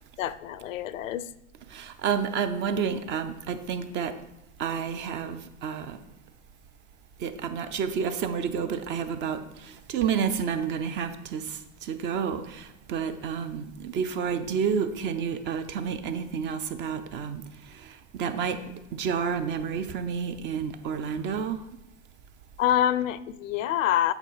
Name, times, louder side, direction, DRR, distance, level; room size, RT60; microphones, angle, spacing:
voice 1, 0.2-1.3 22.6-24.1, left 11 dB, 75° left, 0.6 m, -26 dB
voice 2, 1.7-4.1 4.6-6.0 7.2-18.6 18.9-21.6, right 7 dB, 30° right, 0.6 m, -30 dB
8.0 x 3.5 x 5.7 m
hypercardioid pair, 120°, 39 cm